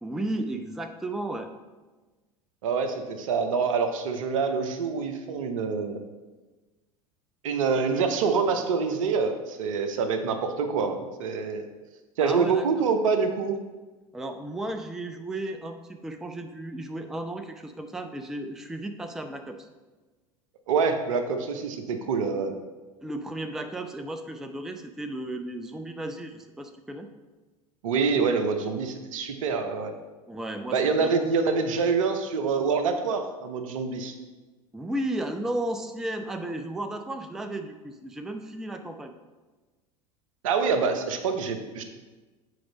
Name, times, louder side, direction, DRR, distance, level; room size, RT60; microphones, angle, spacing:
voice 1, 0.0-1.5 12.2-12.7 14.1-19.7 23.0-27.1 30.3-31.3 34.7-39.1, right 1 dB, ahead, 6 dB, 0.4 m, -34 dB
voice 2, 2.6-6.0 7.4-11.6 12.2-13.6 20.7-22.6 27.8-29.9 30.7-34.1 40.4-41.8, right 5 dB, 65° right, 7 dB, 0.8 m, -26 dB
7.7 x 4.9 x 3.9 m, 1.2 s
figure-of-eight pair, 75°, 19 cm